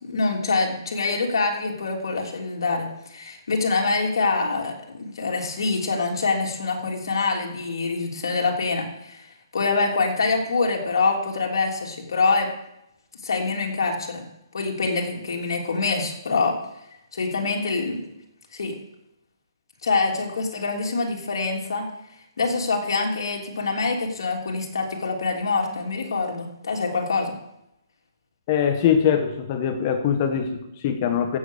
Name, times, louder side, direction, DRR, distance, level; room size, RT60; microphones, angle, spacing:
voice 1, 0.0-9.3 9.5-12.5 13.2-14.2 14.5-16.6 17.1-18.0 18.5-18.7 19.8-21.9 22.4-27.3, left 3 dB, 70° left, 1 dB, 3.4 m, -25 dB
voice 2, 28.5-31.4, left 8 dB, 30° left, 7 dB, 1.4 m, -22 dB
15.5 x 8.0 x 6.6 m, 0.85 s
hypercardioid pair, 165°, 2 cm